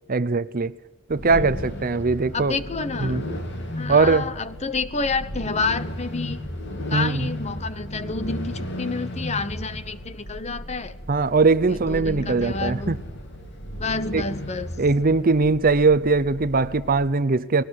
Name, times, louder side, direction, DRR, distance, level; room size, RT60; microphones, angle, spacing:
voice 1, 0.1-0.7 1.1-2.6 3.0-3.2 3.9-4.3 6.9-7.3 11.1-13.0 14.1-14.2 14.8-17.6, right 4 dB, 40° right, 0.7 m, -20 dB
sound 1, 1.1-17.1, left 1 dB, 55° left, 3.3 m, -34 dB
voice 2, 1.3-1.8 2.3-3.3 3.7-6.4 6.9-11.0 11.7-13.0 13.8-14.7, left 4 dB, 30° left, 1.1 m, -29 dB
21.0 x 18.5 x 9.6 m
head